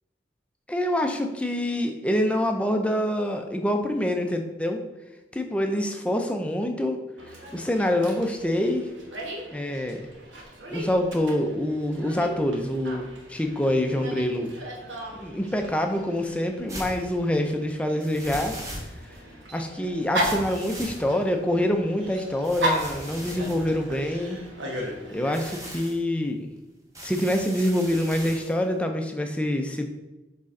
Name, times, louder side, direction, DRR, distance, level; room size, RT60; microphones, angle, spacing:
voice 1, 0.7-4.8 5.3-7.0 7.5-8.9 9.5-10.0 10.7-14.5 15.1-18.8 19.5-24.4 25.1-26.5 27.0-29.9, left 1 dB, 5° left, 4 dB, 0.5 m, -26 dB
Dog, 7.2-25.5, equal, 85° right, 1.2 m, -36 dB
sound 1, 16.7-17.0 18.0-19.2 20.1-21.4 22.4-24.5 25.2-26.0 26.9-28.5, equal, 20° right, 0.9 m, -39 dB
6.6 x 4.2 x 3.7 m, 1.1 s
head